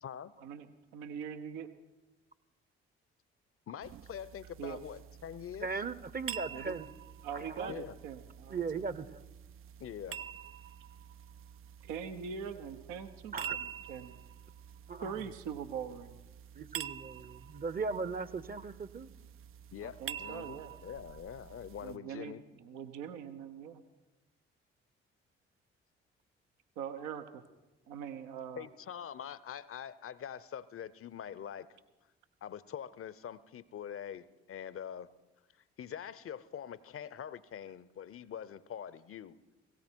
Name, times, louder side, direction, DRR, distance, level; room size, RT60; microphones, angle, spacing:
voice 1, 0.0-0.3 3.7-5.8 7.7-8.0 9.8-10.2 19.7-22.4 28.5-31.7 32.4-35.1 35.8-39.4, left 9 dB, 45° left, 18 dB, 0.7 m, -44 dB
voice 2, 0.9-1.7 4.6-4.8 6.5-6.8 7.2-8.6 11.8-14.2 15.0-16.2 19.8-20.7 21.8-23.8 26.8-27.4 27.9-28.7, right 7 dB, 75° right, 8 dB, 0.9 m, -42 dB
sound 1, 3.8-22.0, right 9 dB, 45° right, 0.4 m, -47 dB
voice 3, 5.6-6.9 7.4-7.7 8.5-9.2 13.3-13.6 14.9-15.1 16.6-19.1, right 4 dB, 30° right, 16 dB, 0.8 m, -38 dB
17.0 x 17.0 x 4.6 m, 1.1 s
hypercardioid pair, 45°, 31 cm